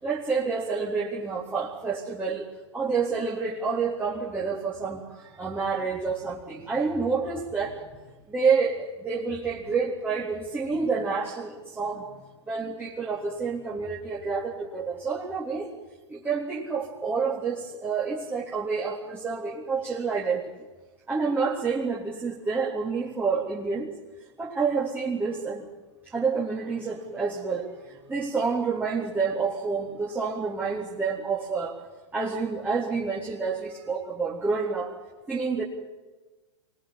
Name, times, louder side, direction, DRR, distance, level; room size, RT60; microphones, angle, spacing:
voice 1, 0.0-2.5 2.7-8.0 8.3-12.0 12.5-15.7 16.1-20.5 21.1-23.9 24.4-25.7 26.0-31.8 32.1-34.9 35.3-35.6, right 5 dB, 10° right, -4 dB, 3.7 m, -28 dB
24.0 x 20.0 x 9.0 m, 1.2 s
hypercardioid pair, 110°, 15 cm